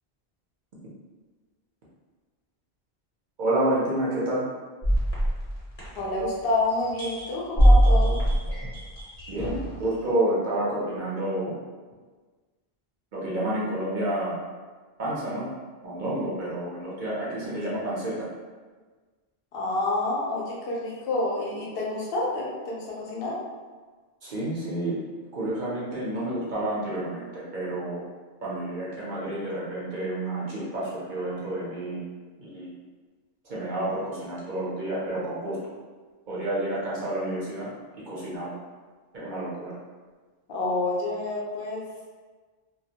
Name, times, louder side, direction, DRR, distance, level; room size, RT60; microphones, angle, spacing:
voice 1, 3.4-4.4 9.3-11.5 13.1-14.4 15.0-15.5 15.8-18.3 24.2-25.0 25.3-28.0 28.4-32.0 32.4-32.7 33.4-35.6 36.3-38.5 39.1-39.8, right 1 dB, 55° right, -7 dB, 0.7 m, -29 dB
sound 1, 4.8-6.4 6.8-9.8, equal, 40° left, 0.7 m, -22 dB
voice 2, 6.0-8.2 19.5-23.4 40.5-41.8, left 2 dB, 70° left, -4 dB, 0.8 m, -28 dB
2.2 x 2.1 x 2.7 m, 1.4 s
omnidirectional pair, 1.1 m